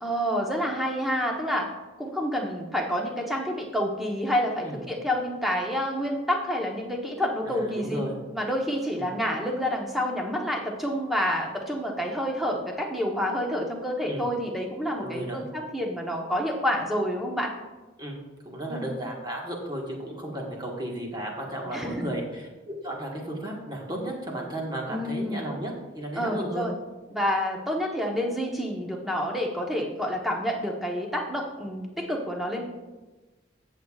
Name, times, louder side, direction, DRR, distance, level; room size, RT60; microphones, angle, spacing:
voice 1, 0.0-1.7 2.0-8.0 8.3-17.5 18.7-18.9 21.7-22.0 24.9-25.4 26.2-26.7 27.1-32.6, equal, ahead, 0 dB, 1.0 m, -28 dB
voice 2, 7.5-8.2 8.9-9.1 14.0-14.3 15.0-15.5 18.0-18.2 18.4-26.6, right 1 dB, 20° right, -1 dB, 1.4 m, -34 dB
15.5 x 6.6 x 2.4 m, 1.2 s
head